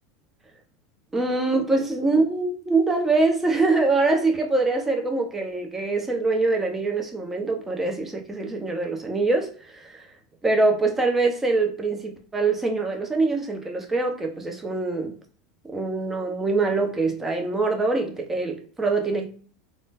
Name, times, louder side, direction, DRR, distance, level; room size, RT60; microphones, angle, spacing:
voice 1, 1.1-10.0 10.4-15.1 15.6-19.3, right 3 dB, 15° right, 0.8 m, -24 dB
3.4 x 2.6 x 2.5 m
hypercardioid pair, 85°, 2 cm